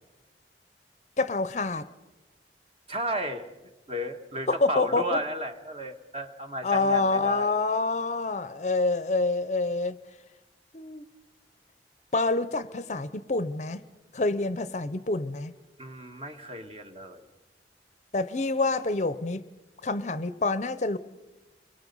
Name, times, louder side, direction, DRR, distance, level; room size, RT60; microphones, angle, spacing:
voice 1, 1.2-1.9 4.5-5.2 6.6-10.0 10.7-11.0 12.1-13.8 14.1-15.5 18.1-19.4 19.8-21.0, left 3 dB, 40° left, 14 dB, 0.7 m, -27 dB
voice 2, 2.9-3.5 3.9-7.6 15.8-17.2, equal, 35° right, 6 dB, 1.6 m, -33 dB
28.5 x 23.5 x 5.4 m, 1.0 s
head